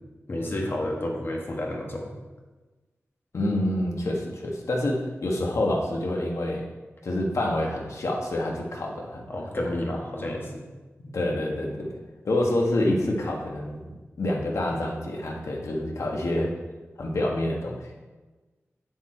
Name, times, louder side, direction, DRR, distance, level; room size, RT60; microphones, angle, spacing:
voice 1, 0.3-2.1 9.3-10.6 11.0-11.1, left 1 dB, 50° left, 0 dB, 1.6 m, -30 dB
voice 2, 3.3-6.6 7.0-9.3 11.1-12.0 12.2-13.9 14.2-16.5 17.0-17.9, left 1 dB, 85° left, 0 dB, 1.4 m, -27 dB
8.1 x 7.1 x 4.4 m, 1.2 s
wide cardioid pair, 100°, 5 cm